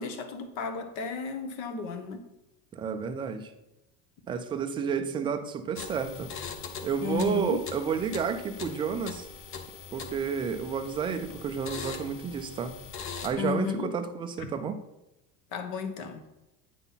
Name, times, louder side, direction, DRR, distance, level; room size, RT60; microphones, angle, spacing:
voice 1, 0.0-2.2 7.0-7.6 13.4-13.9 15.5-16.2, left 6 dB, 55° left, 1.2 m, -33 dB
voice 2, 2.7-3.5 4.3-6.3 6.8-9.3 9.9-12.7 13.2-14.8, right 6 dB, 15° right, 0.3 m, -31 dB
sound 1, 5.8-13.3, left 6 dB, 35° left, 0.8 m, -41 dB
9.1 x 3.9 x 5.6 m
cardioid pair, 155°, 37 cm